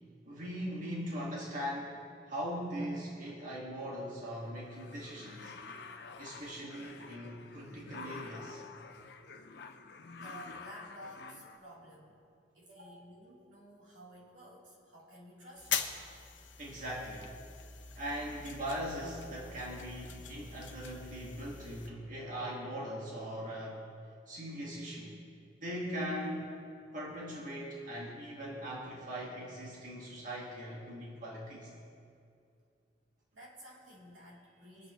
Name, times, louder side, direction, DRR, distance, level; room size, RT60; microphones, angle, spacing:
voice 1, 0.3-2.0 2.3-5.5 6.2-8.6 16.6-17.3 18.0-23.8 24.3-25.1 25.6-26.5 26.9-31.7, equal, 45° right, -5 dB, 1.8 m, -40 dB
sound 1, 4.4-11.6, left 4 dB, 60° left, 0.6 m, -49 dB
voice 2, 10.1-12.2 12.5-15.9 33.3-34.9, equal, 85° right, -6 dB, 3.4 m, -53 dB
sound 2, 15.6-21.9, left 7 dB, 75° left, 1.0 m, -42 dB
24.0 x 8.3 x 3.1 m, 2.4 s
head